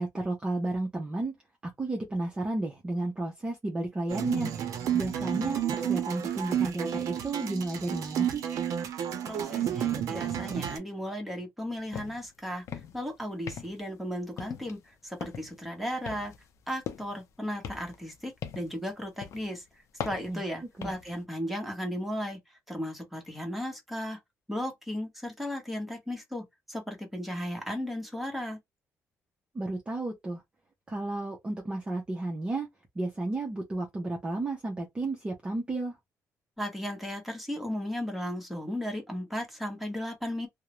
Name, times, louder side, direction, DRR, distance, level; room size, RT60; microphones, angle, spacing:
voice 1, 0.0-1.3 1.8-4.5 4.9-8.4 20.3-20.4 20.8-20.9 29.5-30.4 30.9-32.7 33.0-35.9, right 2 dB, 20° right, 0.6 m, -32 dB
sound 1, 4.1-10.8, right 9 dB, 75° right, 0.6 m, -31 dB
voice 2, 9.2-12.6 12.9-16.3 16.7-19.6 20.0-22.4 22.7-24.2 24.5-28.6 36.6-40.5, equal, ahead, 0.9 m, -35 dB
sound 2, 11.9-12.3 12.6-13.0 13.5-13.9 14.4-14.8 15.2-15.6 16.1-17.3 17.6-18.8 19.2-19.5 20.0-21.2, left 8 dB, 60° left, 0.5 m, -40 dB
2.4 x 2.0 x 3.0 m
cardioid pair, 145°, 6 cm